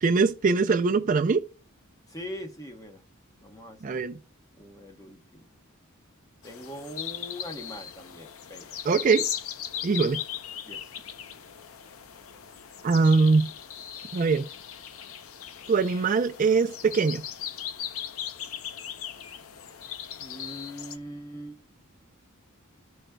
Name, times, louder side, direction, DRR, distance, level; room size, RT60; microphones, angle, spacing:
voice 1, 0.0-1.4 3.8-4.2 8.8-9.2 9.8-10.2 12.8-13.5 14.1-14.5 15.7-17.2, right 4 dB, 35° right, 0.4 m, -22 dB
voice 2, 2.1-3.0 3.4-4.1 4.6-5.5 6.4-8.7 10.7-10.9 20.2-21.6, equal, 15° left, 0.9 m, -42 dB
sound 1, 6.4-21.0, left 9 dB, 70° left, 0.5 m, -38 dB
14.0 x 5.0 x 2.2 m
head